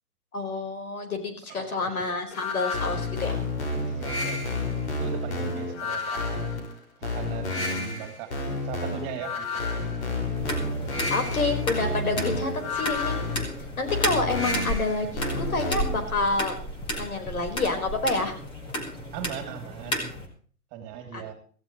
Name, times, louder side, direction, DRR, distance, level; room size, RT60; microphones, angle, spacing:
voice 1, 0.3-3.4 11.1-13.2 13.8-16.5 17.0-18.3 21.1-21.3, left 3 dB, 70° left, 6 dB, 4.7 m, -28 dB
voice 2, 1.5-1.9 3.8-4.6 5.0-6.5 7.0-8.3 8.6-9.8 19.1-20.1 20.7-21.3, right 7 dB, 25° right, 5 dB, 2.9 m, -39 dB
sound 1, 2.3-16.1, left 2 dB, 45° left, 5.4 m, -30 dB
sound 2, 10.3-20.3, equal, 10° left, 2.0 m, -33 dB
17.0 x 15.0 x 3.1 m, 0.43 s
hypercardioid pair, 145°, 44 cm